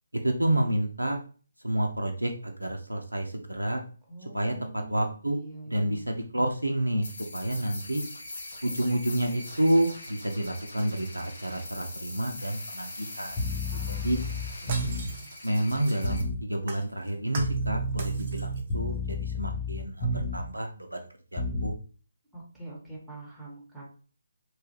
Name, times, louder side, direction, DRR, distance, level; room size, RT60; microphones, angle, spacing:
voice 1, 0.1-1.2 1.6-3.8 4.3-5.4 5.7-8.0 8.6-13.4 13.9-14.2 15.4-21.7, right 1 dB, 90° right, 3 dB, 0.5 m, -29 dB
voice 2, 4.1-6.1 13.7-14.2 14.6-15.3 22.3-23.8, right 2 dB, 5° right, -6 dB, 1.0 m, -45 dB
sound 1, 7.0-16.2, left 2 dB, 60° left, 1.1 m, -42 dB
sound 2, 13.3-15.2 16.0-16.4 17.4-20.6 21.4-21.8, left 1 dB, 20° left, 0.6 m, -31 dB
Shatter, 14.2-16.3 16.7-17.7 18.0-18.7 19.1-19.2, right 3 dB, 35° right, 0.6 m, -42 dB
3.0 x 2.3 x 2.9 m, 0.39 s
figure-of-eight pair, 145°, 0 cm